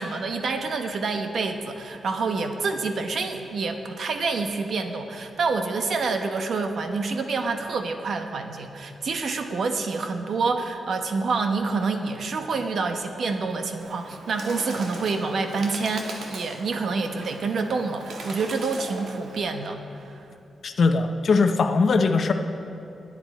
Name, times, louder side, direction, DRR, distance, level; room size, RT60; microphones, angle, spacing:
voice 1, 0.0-20.2, right 4 dB, 60° right, 6 dB, 1.0 m, -27 dB
Bird, 13.8-19.4, right 2 dB, 80° right, 1.9 m, -40 dB
voice 2, 20.6-22.3, left 4 dB, 50° left, 7 dB, 0.7 m, -20 dB
20.5 x 8.8 x 4.3 m, 2.7 s
wide cardioid pair, 135°, 0 cm